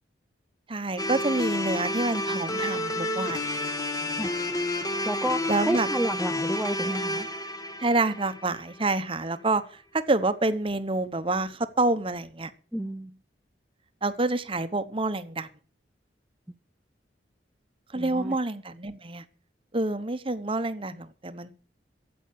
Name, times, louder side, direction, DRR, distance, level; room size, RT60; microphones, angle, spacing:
voice 1, 0.7-4.3 5.5-5.9 7.8-12.5 14.0-15.5 17.9-19.2 19.7-21.5, right 2 dB, 30° right, 11 dB, 1.0 m, -28 dB
sound 1, 1.0-9.1, left 1 dB, 20° left, 1.1 m, -30 dB
voice 2, 5.0-5.4 5.7-7.3 12.7-13.1 17.9-18.4, right 1 dB, 5° right, 5 dB, 0.5 m, -30 dB
13.0 x 8.1 x 7.4 m, 0.41 s
head